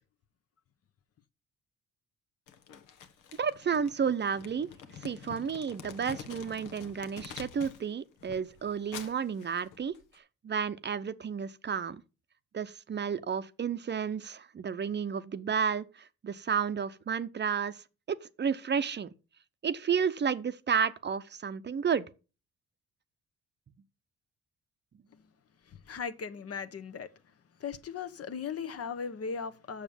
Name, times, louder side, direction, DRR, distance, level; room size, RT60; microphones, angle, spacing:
Crumpling crinkling, 2.5-7.9 8.2-10.2, left 8 dB, 85° left, 1.3 m, -47 dB
voice 1, 3.4-4.7 5.0-10.0 10.4-12.0 12.5-17.8 18.1-19.1 19.6-22.1, right 7 dB, 35° right, 0.7 m, -31 dB
voice 2, 25.6-27.1 27.6-29.8, left 6 dB, 50° left, 1.1 m, -38 dB
7.1 x 6.6 x 7.1 m
cardioid pair, 90°, 30 cm